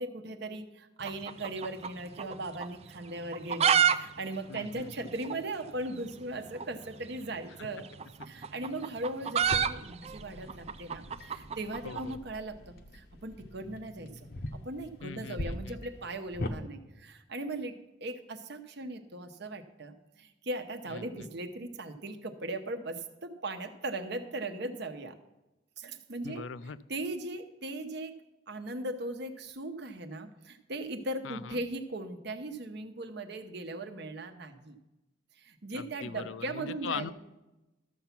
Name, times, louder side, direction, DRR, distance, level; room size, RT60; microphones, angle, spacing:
voice 1, 0.0-7.9 8.2-14.3 14.6-17.8 18.0-25.2 25.8-26.4 26.9-28.1 28.5-34.8 35.4-37.1, right 2 dB, 60° right, 7 dB, 1.0 m, -38 dB
sound 1, 1.0-2.3 2.6-2.7 3.2-4.0 4.2-4.3 4.5-4.6 5.2-5.3 6.5-6.7 7.8-12.1, right 8 dB, 30° right, 0.4 m, -28 dB
voice 2, 4.5-5.1 11.8-12.2 15.0-15.8 20.9-21.3 26.2-26.8 31.2-31.6 35.7-37.1, left 6 dB, 75° left, 16 dB, 0.4 m, -41 dB
sound 2, 9.4-16.6, left 1 dB, 55° left, 0.8 m, -42 dB
13.0 x 7.0 x 5.9 m, 1.0 s
head